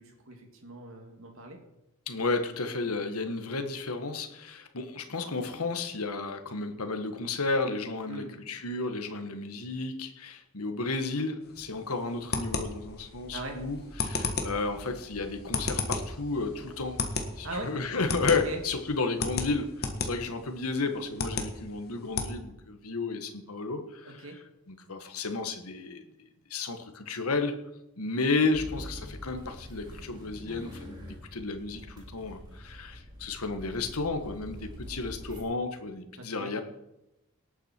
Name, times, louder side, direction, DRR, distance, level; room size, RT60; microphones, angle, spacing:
voice 1, 0.0-1.6 8.1-8.3 13.3-13.6 17.4-17.7 18.3-18.6 24.0-24.4 36.2-36.5, right 2 dB, 65° right, 3 dB, 2.6 m, -40 dB
voice 2, 2.1-17.0 17.4-24.2 24.7-26.0 26.5-27.6 28.0-36.6, left 3 dB, 90° left, 7 dB, 1.5 m, -32 dB
sound 1, 11.4-22.3, left 4 dB, 45° left, 1.5 m, -35 dB
sound 2, 12.6-18.9, equal, 20° left, 3.6 m, -50 dB
sound 3, 28.5-35.4, equal, 20° right, 3.7 m, -44 dB
18.5 x 9.0 x 4.5 m, 0.90 s
head